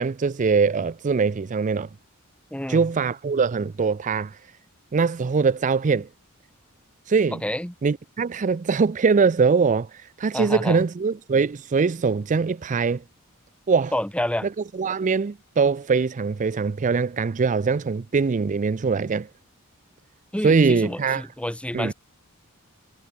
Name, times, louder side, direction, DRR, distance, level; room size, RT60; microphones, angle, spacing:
voice 1, 0.0-1.9 2.7-4.4 4.9-6.1 7.1-7.4 7.8-13.0 13.7-13.9 14.8-19.3 20.4-21.3 21.7-21.9, right 5 dB, 35° right, 0.4 m, -22 dB
voice 2, 2.5-2.8 7.4-7.7 10.3-10.8 13.9-14.5 20.3-21.9, left 1 dB, 5° left, 1.3 m, -28 dB
head